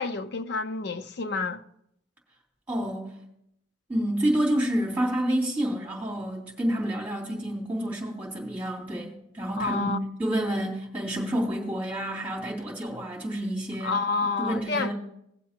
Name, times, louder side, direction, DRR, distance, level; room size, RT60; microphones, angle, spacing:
voice 1, 0.0-1.6 9.6-10.0 13.8-14.9, left 4 dB, 55° left, 0.6 m, -29 dB
voice 2, 2.7-3.1 3.9-9.9 10.2-14.0 14.4-14.9, right 1 dB, 10° right, 2.9 m, -29 dB
18.5 x 7.5 x 2.9 m
head